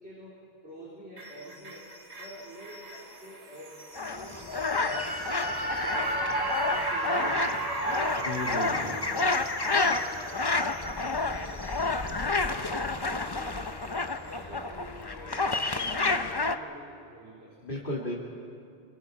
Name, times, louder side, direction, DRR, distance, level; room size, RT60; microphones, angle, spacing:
voice 1, 0.0-1.9 2.2-6.3 6.7-8.1 8.4-17.9, equal, 80° right, -7 dB, 4.4 m, -48 dB
sound 1, 1.2-13.5 13.8-13.9, right 1 dB, 35° right, 1.9 m, -35 dB
sound 2, 3.9-16.6, left 3 dB, 25° left, 0.7 m, -30 dB
voice 2, 8.2-8.9 17.6-18.2, left 1 dB, 55° left, -4 dB, 2.5 m, -34 dB
27.0 x 25.0 x 4.9 m, 2.4 s
omnidirectional pair, 1.0 m